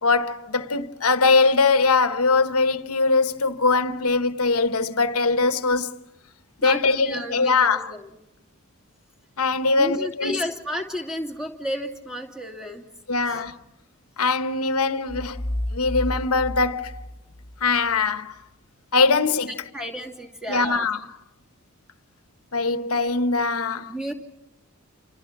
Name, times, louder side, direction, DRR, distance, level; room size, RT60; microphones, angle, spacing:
voice 1, 0.0-6.0 6.6-7.9 9.4-10.4 13.1-13.6 14.2-15.4 15.7-17.0 17.6-18.3 18.9-19.6 20.5-21.1 22.5-24.1, left 4 dB, 85° left, 1.1 m, -22 dB
voice 2, 6.6-8.1 9.7-12.9 13.2-13.4 19.7-20.9 23.9-24.1, equal, 5° right, 2.7 m, -32 dB
sound 1, 15.1-18.0, left 1 dB, 20° left, 1.3 m, -31 dB
28.5 x 28.0 x 6.0 m
head